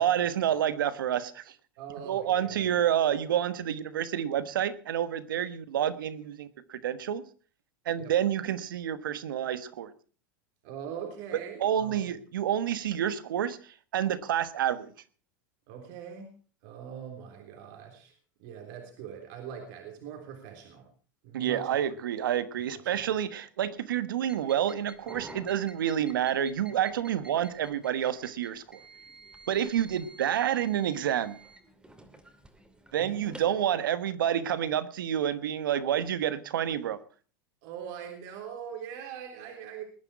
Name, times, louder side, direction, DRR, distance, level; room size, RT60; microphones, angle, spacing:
voice 1, 0.0-1.5 2.1-7.2 7.8-9.9 11.6-13.6 13.9-14.9 21.3-28.8 29.5-31.4 32.9-37.0, right 10 dB, 85° right, 14 dB, 1.3 m, -29 dB
voice 2, 1.8-2.7 8.0-8.1 10.6-12.0 15.7-16.3 16.6-18.1 18.4-20.9 21.2-21.7 22.8-23.1 33.0-33.4 37.6-39.8, right 8 dB, 65° right, 3 dB, 3.5 m, -42 dB
sound 1, 24.2-33.6, right 2 dB, 10° right, 2.6 m, -51 dB
20.5 x 10.0 x 4.7 m, 0.39 s
hypercardioid pair, 110°, 11 cm